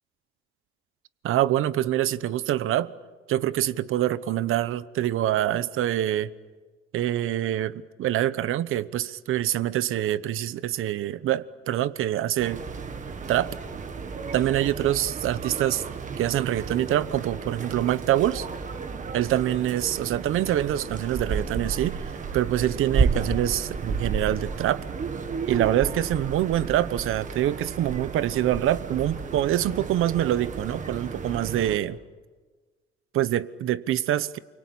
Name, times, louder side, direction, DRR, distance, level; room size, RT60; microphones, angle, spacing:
voice 1, 1.2-2.9 3.3-6.3 6.9-12.6 13.3-13.5 14.3-15.8 16.2-18.5 19.1-22.0 22.3-24.8 25.5-32.0 33.1-34.4, right 12 dB, 80° right, 1.0 m, -25 dB
sound 1, 12.4-31.8, right 5 dB, 35° right, 1.8 m, -32 dB
29.5 x 23.0 x 8.6 m
cardioid pair, 150°, 21 cm